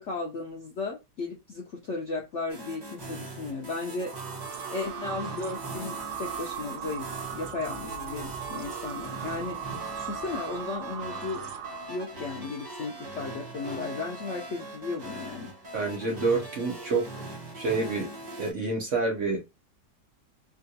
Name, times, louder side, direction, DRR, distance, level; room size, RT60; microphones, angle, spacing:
voice 1, 0.0-4.1 4.7-9.6 9.9-11.4 11.9-15.5, left 3 dB, 65° left, 0 dB, 0.7 m, -35 dB
sound 1, 2.5-18.5, right 1 dB, 30° right, 0.9 m, -41 dB
sound 2, 4.0-12.1, right 9 dB, 80° right, 1.2 m, -38 dB
voice 2, 15.7-17.0 17.5-18.1 18.4-19.4, right 3 dB, 55° right, 1 dB, 0.9 m, -27 dB
3.7 x 2.4 x 2.7 m, 0.24 s
omnidirectional pair, 1.9 m